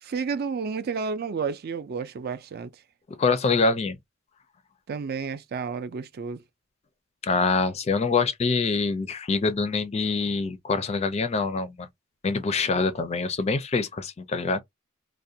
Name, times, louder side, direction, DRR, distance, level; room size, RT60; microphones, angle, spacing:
voice 1, 0.0-2.8 4.9-6.4, right 5 dB, 50° right, 0.4 m, -31 dB
voice 2, 3.2-4.0 7.2-11.9 12.2-14.6, left 4 dB, 30° left, 0.4 m, -25 dB
2.4 x 2.1 x 2.6 m
head